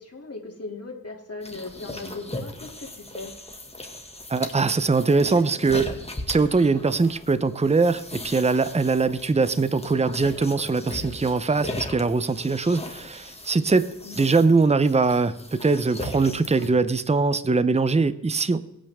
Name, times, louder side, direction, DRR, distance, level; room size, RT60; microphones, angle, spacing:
voice 1, 0.0-3.3 14.0-14.3, left 3 dB, 45° left, 0 dB, 2.8 m, -38 dB
sound 1, 1.4-16.7, left 2 dB, 20° left, 2.0 m, -38 dB
voice 2, 4.3-5.9 6.3-13.9 14.1-18.6, right 4 dB, 20° right, 14 dB, 0.7 m, -22 dB
22.5 x 8.9 x 3.6 m, 0.91 s
wide cardioid pair, 75°, 34 cm